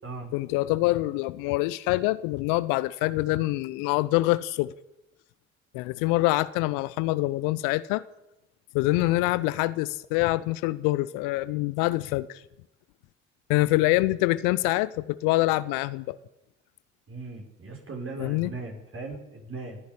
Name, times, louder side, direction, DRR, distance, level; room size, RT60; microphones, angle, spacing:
voice 1, 0.3-4.7 5.7-8.0 8.7-12.4 13.5-16.2 18.2-18.5, left 19 dB, 70° left, 0.8 m, -25 dB
voice 2, 17.1-19.8, right 3 dB, 40° right, 6.4 m, -38 dB
28.5 x 10.5 x 8.7 m
hypercardioid pair, 50°, 33 cm